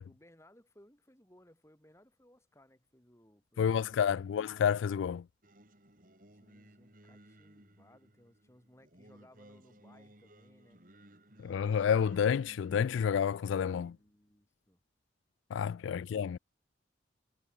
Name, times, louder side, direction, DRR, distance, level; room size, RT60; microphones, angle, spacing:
voice 1, 0.0-4.2 6.3-10.8 13.3-14.8, left 1 dB, 15° left, 3.7 m, -63 dB
voice 2, 3.6-5.2 11.4-14.0 15.5-16.4, left 7 dB, 85° left, 0.3 m, -29 dB
Singing, 5.4-13.9, right 1 dB, 45° right, 5.3 m, -60 dB
head